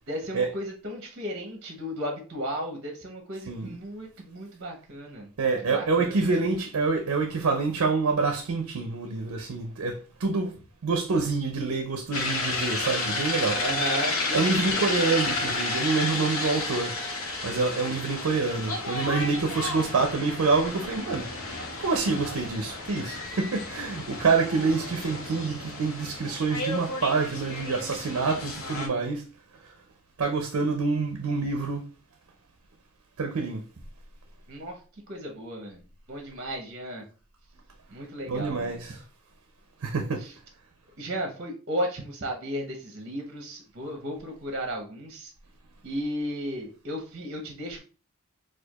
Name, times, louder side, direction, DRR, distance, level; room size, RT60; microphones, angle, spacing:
voice 1, 0.1-5.3 5.7-6.2 13.5-14.9 15.2-15.5 34.5-34.8 35.1-37.0 37.9-38.8 40.2-40.3 41.0-45.3 45.8-47.8, equal, 50° right, 0.8 m, -34 dB
voice 2, 3.5-3.8 5.4-10.6 10.8-13.6 14.3-17.0 17.4-29.3 29.5-29.8 30.2-31.8 33.2-33.6 38.3-39.0 39.8-40.2, right 4 dB, 90° right, 0.5 m, -27 dB
sound 1, 12.1-28.9, left 2 dB, 80° left, 0.7 m, -32 dB
4.4 x 2.4 x 2.3 m
head